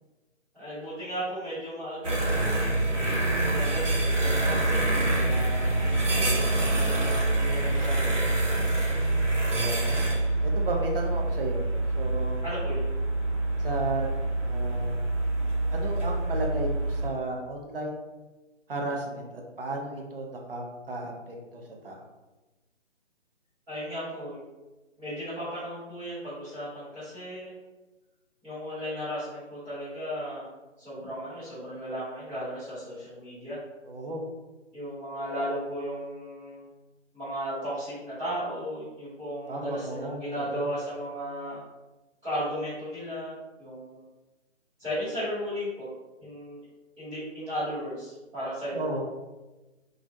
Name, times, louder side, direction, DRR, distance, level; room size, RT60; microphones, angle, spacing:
voice 1, 0.5-3.1 3.5-4.8 5.1-5.9 7.4-8.4 12.4-13.0 23.7-24.4 25.0-27.5 28.4-30.5 30.8-33.6 34.7-36.7 37.1-41.6 42.2-44.1 44.8-45.9 46.2-46.6 47.0-49.0, equal, 5° right, -15 dB, 0.9 m, -35 dB
sound 1, 2.0-17.1, right 2 dB, 80° right, 0.8 m, -26 dB
voice 2, 6.1-6.5 9.5-10.0 10.4-12.4 13.6-14.1 14.4-15.0 15.7-18.0 18.7-19.3 19.6-22.1 33.9-34.2 39.5-40.7 48.7-49.0, right 2 dB, 50° right, 1 dB, 0.5 m, -34 dB
2.4 x 2.1 x 2.5 m, 1.1 s
figure-of-eight pair, 145°, 36 cm